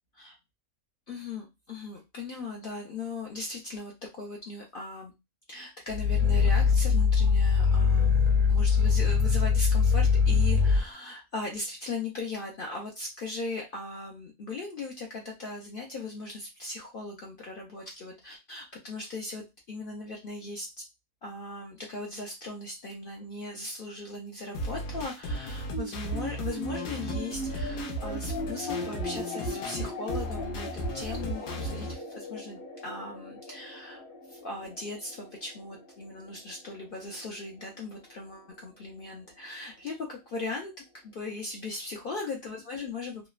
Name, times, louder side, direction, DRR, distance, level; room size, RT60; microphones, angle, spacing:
voice 1, 1.1-5.1 5.5-20.8 21.2-40.7 41.0-43.3, left 3 dB, 60° left, 0 dB, 0.5 m, -38 dB
Growling, 5.9-10.8, left 5 dB, 75° right, 0.4 m, -22 dB
sound 1, 24.5-31.9, equal, 80° left, 1.1 m, -35 dB
sound 2, 25.7-38.3, equal, 45° left, 1.0 m, -39 dB
3.0 x 2.0 x 2.3 m, 0.23 s
omnidirectional pair, 1.5 m